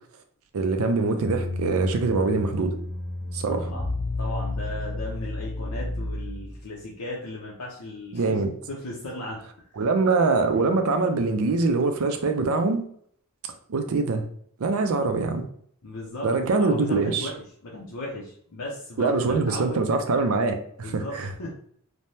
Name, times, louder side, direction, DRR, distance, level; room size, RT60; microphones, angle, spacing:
voice 1, 0.5-2.7 3.3-3.7 8.1-8.5 9.8-12.8 13.7-14.2 14.6-15.5 16.2-17.3 19.0-21.3, right 3 dB, 70° right, 6 dB, 0.4 m, -23 dB
sound 1, 1.2-6.6, left 2 dB, 15° left, 0.9 m, -31 dB
voice 2, 3.5-3.9 4.2-8.4 8.7-9.4 9.7-9.8 15.8-16.3 16.6-17.3 17.6-19.8 20.8-21.5, left 1 dB, 90° left, -4 dB, 0.6 m, -36 dB
3.2 x 2.1 x 2.7 m, 0.62 s
head